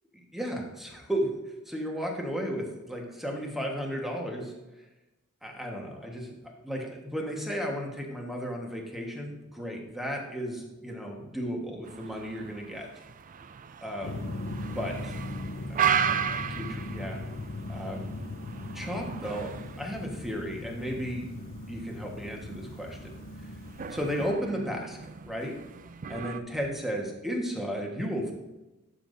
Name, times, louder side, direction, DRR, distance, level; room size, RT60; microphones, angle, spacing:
voice 1, 0.1-4.5 5.4-12.9 13.8-14.3 14.7-15.2 15.7-17.2 17.7-18.2 18.7-19.5 19.8-21.3 21.7-23.2 23.9-25.0 25.2-25.5 26.1-28.3, equal, ahead, 0 dB, 1.4 m, -34 dB
sound 1, 11.8-26.4, right 8 dB, 35° right, 0.4 m, -36 dB
sound 2, 14.0-24.3, left 2 dB, 60° left, 0.8 m, -39 dB
11.5 x 7.0 x 2.7 m, 1.0 s
head